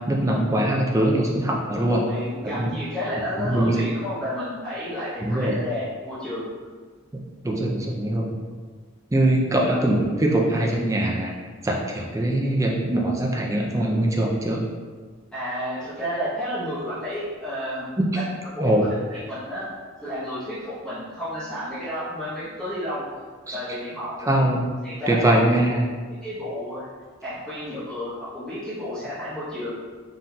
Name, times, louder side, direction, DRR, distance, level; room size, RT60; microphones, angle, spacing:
voice 1, 0.0-2.0 2.4-2.7 3.4-3.8 5.2-5.6 7.4-8.3 9.1-11.3 11.6-14.7 18.0-18.1 18.6-18.9 23.5-23.6 24.2-24.6 25.1-25.9, right 1 dB, 15° right, -1 dB, 0.4 m, -22 dB
voice 2, 1.7-6.4 9.6-9.8 15.3-17.9 18.5-18.9 19.3-19.7 20.0-23.0 23.5-24.3 24.8-25.3 26.2-26.9 27.2-29.7, equal, 5° left, -14 dB, 0.9 m, -31 dB
4.0 x 3.8 x 2.3 m, 1.5 s
head